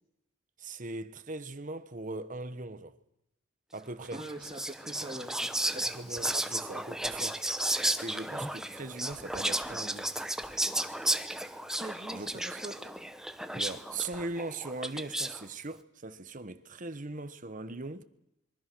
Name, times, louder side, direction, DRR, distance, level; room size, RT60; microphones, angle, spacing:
voice 1, 0.6-3.0 3.7-4.2 5.7-7.4 8.0-10.1 12.1-12.6 13.5-18.0, right 2 dB, 40° right, 1.2 m, -40 dB
Whispering, 4.1-15.4, right 1 dB, 5° right, 0.9 m, -34 dB
voice 2, 4.1-5.8 11.8-12.8, right 1 dB, 25° right, 1.9 m, -43 dB
26.0 x 23.0 x 6.2 m
head